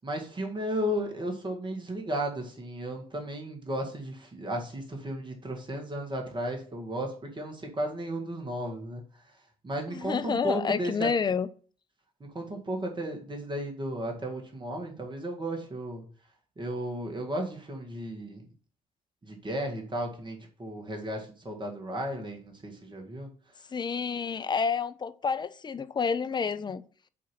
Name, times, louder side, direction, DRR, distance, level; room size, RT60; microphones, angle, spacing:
voice 1, 0.0-9.0 9.6-11.1 12.3-16.0 16.6-18.4 19.2-23.3, right 1 dB, 25° right, 1.8 m, -34 dB
voice 2, 9.9-11.5 23.7-26.8, left 5 dB, 25° left, 0.5 m, -29 dB
8.3 x 3.0 x 5.8 m
figure-of-eight pair, 45°, 19 cm